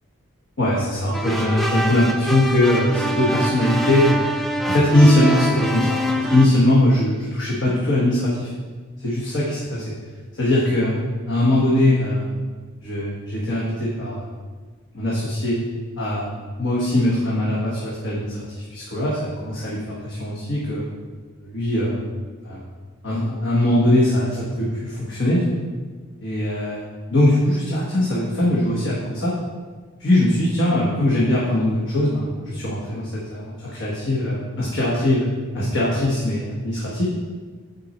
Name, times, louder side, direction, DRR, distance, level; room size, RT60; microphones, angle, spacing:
voice 1, 0.6-4.3 4.6-8.5 9.0-9.8 10.3-10.9 11.3-12.3 12.8-14.3 14.9-15.6 16.0-20.8 21.4-22.0 22.4-22.6 23.0-25.4 26.2-29.3 30.0-35.3 35.5-37.0, left 1 dB, 55° left, -6 dB, 1.2 m, -21 dB
sound 1, 1.1-6.5, right 1 dB, ahead, 0.3 m, -25 dB
8.0 x 4.5 x 4.3 m, 1.4 s
head